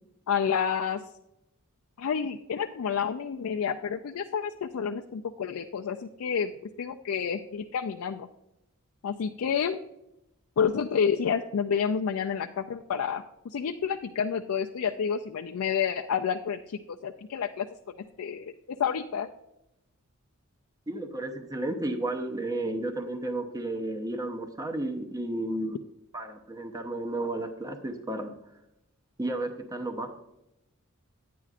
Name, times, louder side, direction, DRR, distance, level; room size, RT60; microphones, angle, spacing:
voice 1, 0.3-1.0 2.0-6.5 6.8-8.3 9.0-9.8 10.6-17.7 18.2-18.5 18.8-19.3, left 7 dB, 70° left, 4 dB, 0.4 m, -29 dB
voice 2, 20.9-25.8 26.1-28.3 29.2-30.1, right 1 dB, 15° right, 4 dB, 0.8 m, -32 dB
11.0 x 9.2 x 2.5 m, 0.87 s
head